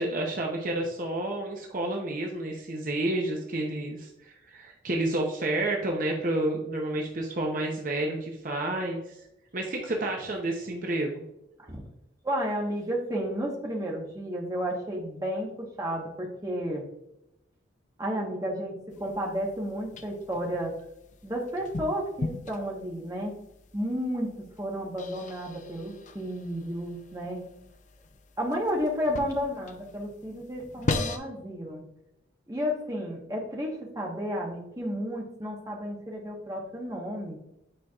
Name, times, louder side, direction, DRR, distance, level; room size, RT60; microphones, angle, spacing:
voice 1, 0.0-9.2 9.5-11.1, right 1 dB, 45° right, 0 dB, 0.7 m, -30 dB
voice 2, 12.2-16.9 18.0-20.7 21.2-23.3 23.7-24.3 24.6-27.4 28.4-31.8 32.5-37.4, equal, 20° right, -1 dB, 1.1 m, -32 dB
sound 1, 18.9-31.2, left 3 dB, 40° left, 0.5 m, -39 dB
8.8 x 4.5 x 2.4 m, 0.85 s
head